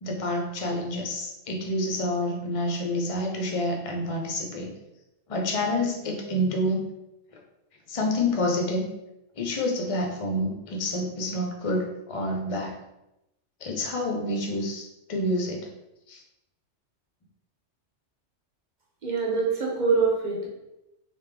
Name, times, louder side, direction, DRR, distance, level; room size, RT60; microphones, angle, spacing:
voice 1, 0.0-4.7 5.3-6.8 7.9-8.9 9.4-12.8 13.6-14.8 15.1-15.7 16.1-16.2, left 1 dB, 40° left, 1 dB, 0.6 m, -28 dB
voice 2, 19.0-20.5, right 4 dB, 40° right, -2 dB, 0.9 m, -24 dB
3.4 x 2.8 x 3.3 m, 0.90 s
omnidirectional pair, 1.3 m